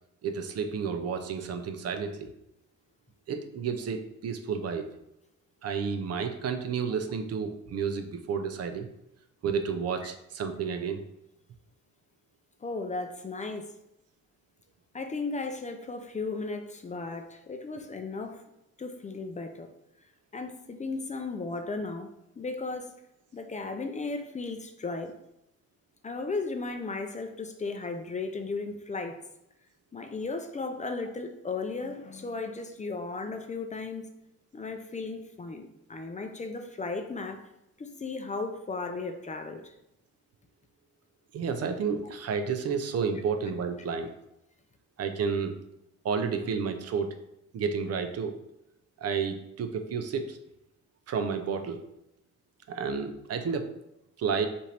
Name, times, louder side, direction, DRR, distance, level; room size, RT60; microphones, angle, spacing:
voice 1, 0.2-2.3 3.3-4.9 5.6-8.9 9.4-11.0 41.3-44.1 45.0-45.6 46.0-47.2 47.5-48.3 49.0-50.4 51.1-51.8 52.7-53.7 54.2-54.5, right 6 dB, 55° right, 7 dB, 0.6 m, -31 dB
voice 2, 12.6-13.7 14.9-18.4 18.8-19.7 20.3-22.1 22.4-22.9 23.3-25.1 26.0-29.2 29.9-34.1 34.5-37.5 37.8-39.7, left 3 dB, 25° left, 6 dB, 0.5 m, -35 dB
5.3 x 2.6 x 3.3 m, 0.84 s
cardioid pair, 90°, 30 cm